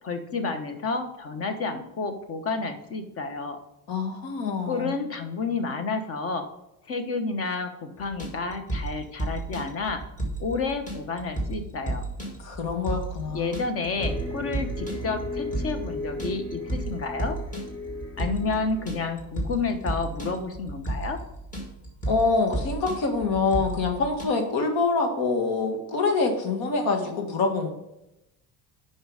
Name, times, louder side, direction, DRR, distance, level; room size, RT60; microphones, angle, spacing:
voice 1, 0.0-3.6 4.7-6.4 6.9-10.0 10.4-12.0 13.3-17.4 18.2-21.2, left 4 dB, 35° left, 8 dB, 1.1 m, -30 dB
voice 2, 3.9-4.9 12.4-13.6 22.1-27.7, left 4 dB, 60° left, 4 dB, 1.8 m, -25 dB
sound 1, 8.0-24.2, right 2 dB, 20° left, 1.9 m, -33 dB
sound 2, 13.9-19.1, left 1 dB, 5° left, 3.1 m, -36 dB
7.7 x 5.6 x 4.9 m, 0.87 s
cardioid pair, 155°, 40 cm